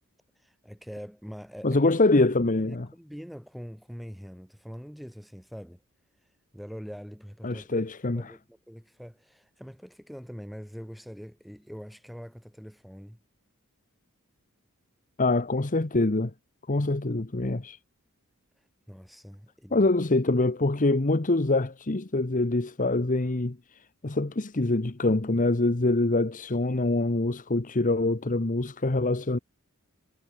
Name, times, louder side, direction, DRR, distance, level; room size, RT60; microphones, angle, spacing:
voice 1, 0.3-1.8 2.3-5.8 6.5-13.2 18.6-19.9, equal, ahead, 3.1 m, -44 dB
voice 2, 1.6-2.9 7.4-8.3 15.2-16.3 16.7-17.8 19.7-23.6 24.0-29.4, left 2 dB, 35° left, 1.1 m, -25 dB
head